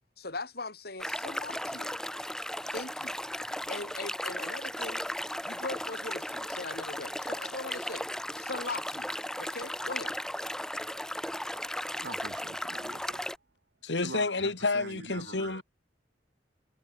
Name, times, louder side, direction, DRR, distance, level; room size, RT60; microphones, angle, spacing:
voice 1, 0.2-2.0 2.7-3.2 3.7-5.0 5.4-8.1 8.4-9.1 9.4-10.1, left 3 dB, 60° left, 5.5 m, -40 dB
sound 1, 1.0-13.4, left 1 dB, 5° left, 7.3 m, -36 dB
voice 2, 12.0-13.3 14.0-15.6, right 3 dB, 75° right, 2.2 m, -44 dB
voice 3, 13.8-15.6, left 3 dB, 90° left, 2.0 m, -30 dB
head